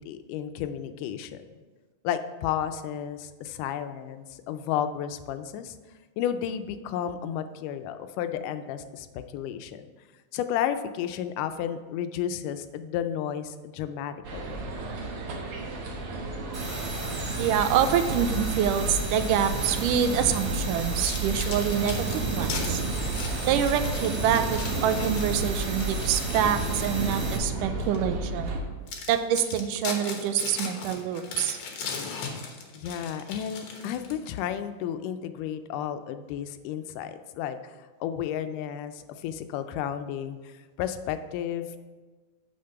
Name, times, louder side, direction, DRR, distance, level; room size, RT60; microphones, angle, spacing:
voice 1, 0.1-1.4 2.0-5.8 6.2-9.9 10.3-14.6 32.7-37.6 38.0-41.8, left 9 dB, 90° left, 10 dB, 2.2 m, -32 dB
sound 1, 14.2-28.6, right 2 dB, 60° right, 1.6 m, -32 dB
sound 2, 16.5-27.4, right 2 dB, 40° right, 3.0 m, -35 dB
voice 2, 17.4-22.8 23.5-28.5 29.1-31.6, right 9 dB, 90° right, 9 dB, 2.2 m, -26 dB
sound 3, 20.8-27.3 27.8-28.0 28.5-28.6 28.9-34.4, left 5 dB, 60° left, 2.1 m, -38 dB
8.7 x 5.9 x 5.7 m, 1.3 s
omnidirectional pair, 3.6 m